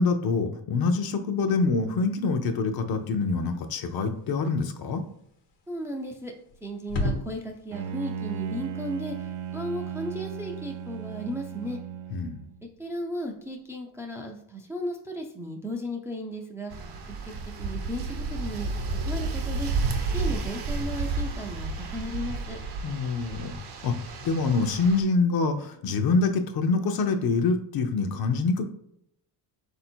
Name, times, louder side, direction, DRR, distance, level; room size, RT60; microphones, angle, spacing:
voice 1, 0.0-5.0 12.1-12.4 22.8-23.6 23.8-24.0 24.2-28.6, left 4 dB, 60° left, 7 dB, 0.6 m, -25 dB
sound 1, 2.8-11.8, left 1 dB, 85° left, 1.2 m, -40 dB
voice 2, 5.7-6.3 6.6-11.8 12.8-16.8 17.6-19.7 20.1-22.6, equal, 5° right, 1 dB, 0.3 m, -35 dB
Bowed string instrument, 7.7-12.7, right 8 dB, 85° right, 0.5 m, -36 dB
sound 2, 16.7-25.0, right 3 dB, 60° right, 0.8 m, -31 dB
4.1 x 2.7 x 4.3 m, 0.74 s
cardioid pair, 140°, 42 cm